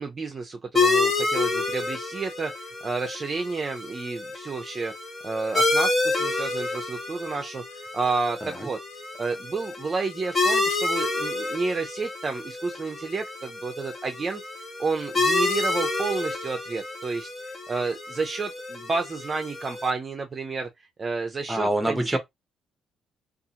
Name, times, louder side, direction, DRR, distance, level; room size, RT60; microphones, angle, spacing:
voice 1, 0.0-4.9 5.2-7.6 7.9-8.8 9.2-14.4 14.8-17.3 17.7-20.7 21.0-22.2, right 4 dB, 35° right, 0.5 m, -30 dB
sound 1, 0.7-19.9, left 3 dB, 35° left, 0.9 m, -28 dB
voice 2, 21.5-22.2, right 1 dB, 10° right, 0.8 m, -26 dB
2.5 x 2.4 x 2.8 m
cardioid pair, 90°, 0 cm